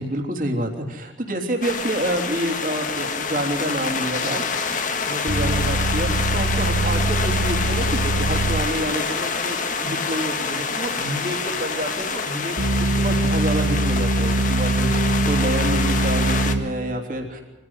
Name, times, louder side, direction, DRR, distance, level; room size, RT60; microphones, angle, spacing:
voice 1, 0.0-4.4 5.1-12.5 12.8-14.9 15.3-17.4, right 1 dB, 45° right, 2 dB, 3.3 m, -28 dB
sound 1, 1.6-16.5, left 5 dB, 45° left, 1.7 m, -27 dB
sound 2, 5.3-8.6 12.6-16.6, right 2 dB, 80° right, 2.3 m, -22 dB
24.0 x 15.5 x 8.2 m, 1.1 s
head